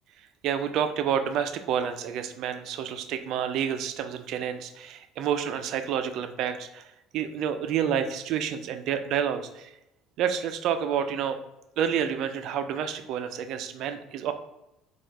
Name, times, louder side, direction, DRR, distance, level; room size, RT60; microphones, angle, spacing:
voice 1, 0.4-9.7 10.2-11.4 11.8-14.3, right 8 dB, 60° right, 8 dB, 0.4 m, -29 dB
4.5 x 2.4 x 4.6 m, 0.89 s
cardioid pair, 120°, 0 cm